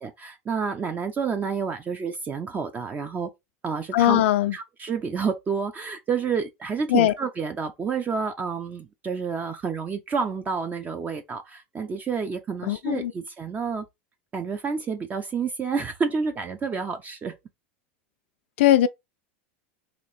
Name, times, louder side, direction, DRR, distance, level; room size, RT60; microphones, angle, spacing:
voice 1, 0.0-3.3 3.6-4.2 4.5-13.9 14.3-17.4, right 5 dB, 25° right, 0.5 m, -29 dB
voice 2, 3.9-4.5 6.9-7.1 12.7-13.1 18.6-18.9, left 12 dB, 75° left, 0.4 m, -19 dB
3.0 x 2.9 x 4.1 m
hypercardioid pair, 105°, 6 cm